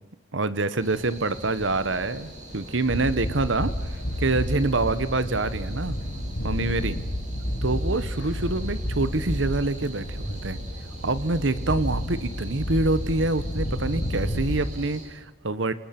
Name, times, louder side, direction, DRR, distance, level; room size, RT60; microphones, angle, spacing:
voice 1, 0.3-3.7 4.2-6.0 6.4-7.0 7.6-10.6 11.0-15.7, right 2 dB, 65° right, 14 dB, 1.2 m, -26 dB
sound 1, 0.8-15.1, right 1 dB, 35° right, 7.1 m, -42 dB
sound 2, 1.6-14.7, equal, 70° left, 5.4 m, -31 dB
28.5 x 28.5 x 6.0 m, 0.90 s
head